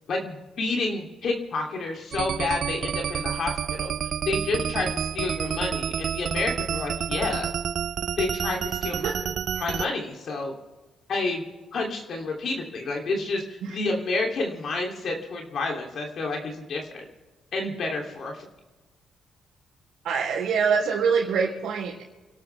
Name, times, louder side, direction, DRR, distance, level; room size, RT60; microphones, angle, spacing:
voice 1, 0.1-3.9 4.3-7.5 8.2-9.1 9.6-10.5 11.1-11.4 11.7-17.0 17.5-18.5, left 3 dB, 60° left, 0 dB, 3.0 m, -29 dB
sound 1, 2.1-9.9, right 8 dB, 60° right, 0.5 m, -29 dB
voice 2, 20.0-22.0, right 6 dB, 80° right, -6 dB, 3.7 m, -25 dB
29.0 x 12.5 x 3.5 m, 1.2 s
cardioid pair, 90°, 0 cm